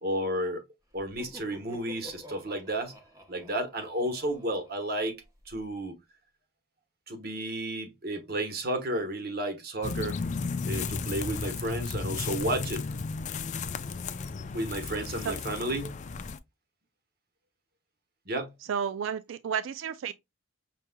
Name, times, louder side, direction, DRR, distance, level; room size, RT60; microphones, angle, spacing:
voice 1, 0.0-0.6 0.9-2.9 3.3-5.2 5.5-5.9 7.1-10.2 10.6-12.8 14.5-16.0 18.3-18.5, right 1 dB, 50° right, 1.1 m, -32 dB
Laughter, 0.9-5.6, left 2 dB, 15° right, 0.8 m, -50 dB
sound 1, 9.8-16.4, left 4 dB, 35° left, 0.3 m, -34 dB
voice 2, 18.7-20.1, right 7 dB, 70° right, 0.3 m, -31 dB
5.8 x 3.0 x 2.2 m
head